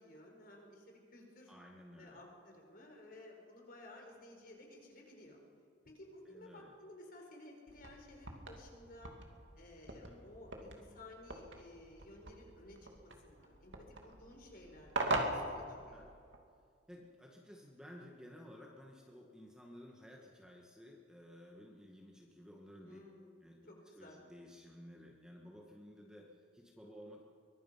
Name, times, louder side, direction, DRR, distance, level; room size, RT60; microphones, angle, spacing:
voice 1, 0.0-1.5 2.0-5.4 5.8-9.1 9.6-16.1 22.8-23.3 23.7-24.2, left 1 dB, 45° left, 1 dB, 4.7 m, -55 dB
voice 2, 1.5-2.2 6.3-6.7 9.9-10.2 15.9-16.1 16.9-23.0 23.4-27.2, equal, 5° right, -1 dB, 1.9 m, -55 dB
sound 1, 7.7-16.4, right 2 dB, 75° right, 2.6 m, -42 dB
23.5 x 21.5 x 5.8 m, 2.2 s
head